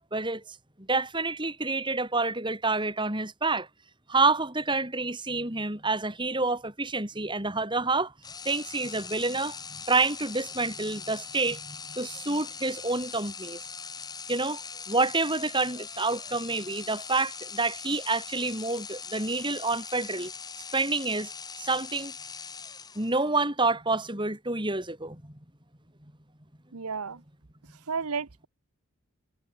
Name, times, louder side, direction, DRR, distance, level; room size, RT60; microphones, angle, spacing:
voice 1, 0.1-0.4 0.9-3.7 4.1-8.1 8.4-13.6 14.3-14.6 14.9-20.3 20.7-21.3 21.6-22.1 22.9-25.4, right 3 dB, 20° right, 4.4 m, -28 dB
sound 1, 8.2-23.3, left 5 dB, 20° left, 6.3 m, -41 dB
voice 2, 26.7-27.2 27.9-28.5, right 5 dB, 85° right, 1.0 m, -32 dB
head